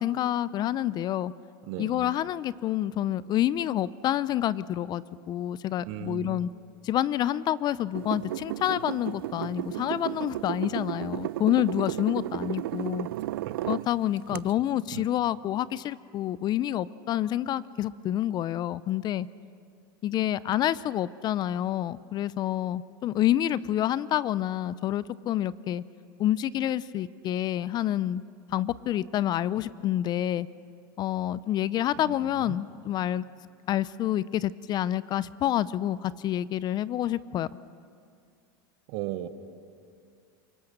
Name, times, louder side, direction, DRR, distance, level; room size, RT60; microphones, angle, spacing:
voice 1, 0.0-1.3 1.8-6.5 6.8-13.1 13.7-19.3 20.0-25.8 26.2-28.2 28.5-30.5 31.0-33.2 33.7-37.5, left 12 dB, 35° left, 19 dB, 0.5 m, -28 dB
voice 2, 1.6-2.1 5.9-6.5 13.3-13.7 14.3-14.4 14.9-15.1 32.0-32.6 38.9-39.3, right 15 dB, 60° right, 11 dB, 1.3 m, -37 dB
sound 1, 7.9-13.9 14.3-14.4, right 15 dB, 80° right, 0.5 m, -33 dB
28.0 x 18.5 x 6.6 m, 2.3 s
supercardioid pair, 115°, 12 cm